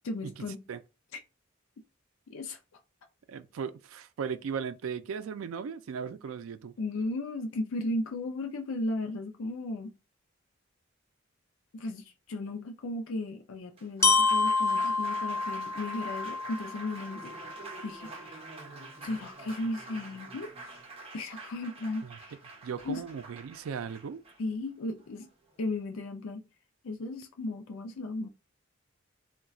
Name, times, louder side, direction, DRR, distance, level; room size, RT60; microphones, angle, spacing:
voice 1, 0.0-0.6 1.1-1.2 2.3-2.6 6.8-10.0 11.7-18.5 19.0-20.8 21.1-22.4 22.8-23.0 24.4-25.3 25.6-26.5 26.8-28.3, left 2 dB, 80° left, 0.4 m, -35 dB
voice 2, 3.3-6.7 22.0-22.2 22.6-24.2, right 6 dB, 90° right, 0.4 m, -37 dB
Applause, 13.6-25.8, right 3 dB, 30° right, 0.6 m, -47 dB
Glockenspiel, 14.0-18.0, left 4 dB, 15° left, 0.4 m, -28 dB
2.3 x 2.2 x 3.8 m
head